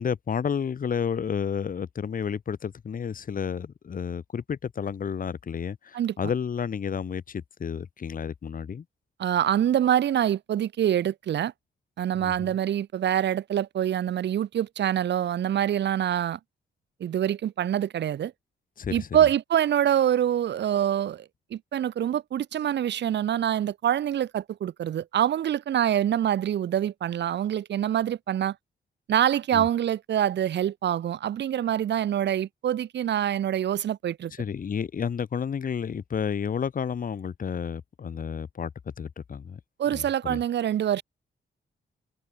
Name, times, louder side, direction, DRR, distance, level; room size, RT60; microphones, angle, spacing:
voice 1, 0.0-8.8 12.2-12.5 18.8-19.1 29.5-29.7 34.4-38.7 39.0-39.6 39.9-40.4, left 7 dB, 45° left, 1.0 m, -31 dB
voice 2, 9.2-11.5 12.0-16.4 17.0-18.3 18.9-28.6 29.1-34.3 39.8-41.0, right 10 dB, 60° right, 0.6 m, -25 dB
cardioid pair, 100°, 20 cm